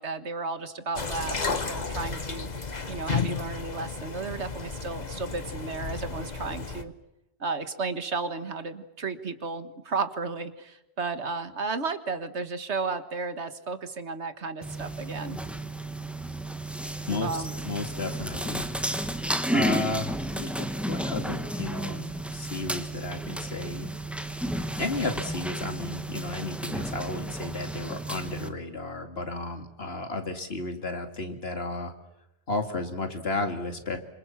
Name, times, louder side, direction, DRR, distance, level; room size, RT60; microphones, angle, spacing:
voice 1, 0.0-2.5 2.9-6.9 7.4-15.4 17.2-17.5, right 4 dB, 75° right, 10 dB, 1.9 m, -33 dB
sound 1, 1.0-6.8, left 4 dB, 40° left, 1.4 m, -33 dB
sound 2, 14.6-28.5, right 1 dB, ahead, 1.4 m, -32 dB
voice 2, 17.6-18.7 19.5-23.9 24.8-31.9 32.5-34.0, left 2 dB, 60° left, 6 dB, 2.6 m, -33 dB
26.5 x 26.5 x 7.3 m, 0.88 s
omnidirectional pair, 1.2 m